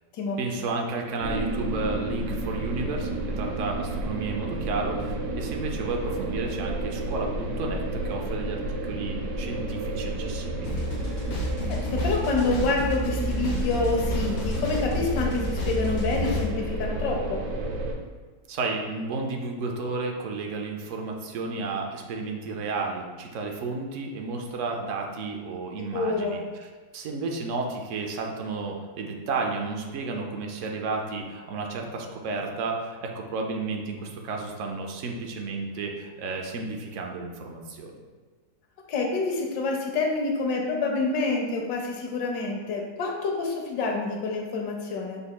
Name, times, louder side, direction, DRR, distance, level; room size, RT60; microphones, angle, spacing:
voice 1, 0.4-3.1 3.4-10.8 18.5-26.7 26.9-38.0, right 3 dB, 70° right, 1 dB, 0.7 m, -32 dB
sound 1, 1.2-17.9, right 2 dB, 90° right, 1.3 m, -31 dB
sound 2, 10.6-16.5, left 1 dB, 60° left, 0.7 m, -31 dB
voice 2, 11.7-17.4 25.9-26.4 38.9-45.2, left 3 dB, 80° left, 1 dB, 1.4 m, -27 dB
5.2 x 4.0 x 2.2 m, 1.5 s
omnidirectional pair, 1.8 m